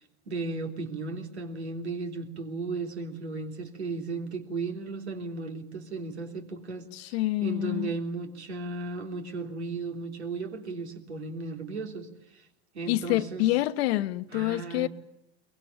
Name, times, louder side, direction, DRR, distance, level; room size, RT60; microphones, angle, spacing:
voice 1, 0.0-12.5 12.7-13.5 14.3-14.9, right 3 dB, 90° right, 3.4 m, -35 dB
voice 2, 6.9-7.9 12.9-14.9, left 17 dB, 70° left, 1.3 m, -27 dB
23.0 x 21.0 x 8.8 m
hypercardioid pair, 85°, 32 cm